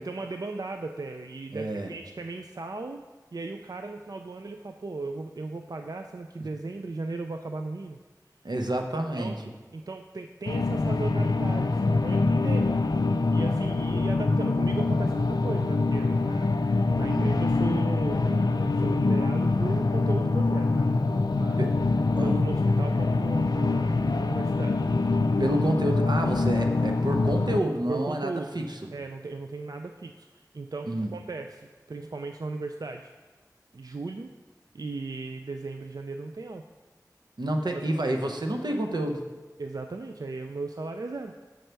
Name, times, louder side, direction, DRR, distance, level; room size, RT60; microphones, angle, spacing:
voice 1, 0.0-3.0 3.3-8.0 9.0-9.4 9.7-12.7 13.3-21.7 22.2-25.2 27.9-28.5 28.9-33.1 33.7-34.3 34.7-36.6 39.6-41.3, right 3 dB, 60° right, 5 dB, 0.3 m, -36 dB
voice 2, 1.5-1.9 8.4-9.3 17.1-17.4 21.6-21.7 22.2-22.5 25.4-28.9 30.8-31.1 37.4-39.2, right 1 dB, 85° right, 4 dB, 0.7 m, -29 dB
sound 1, 10.5-27.6, left 3 dB, 70° left, 0.4 m, -24 dB
6.4 x 4.5 x 6.6 m, 1.3 s
wide cardioid pair, 45°, 7 cm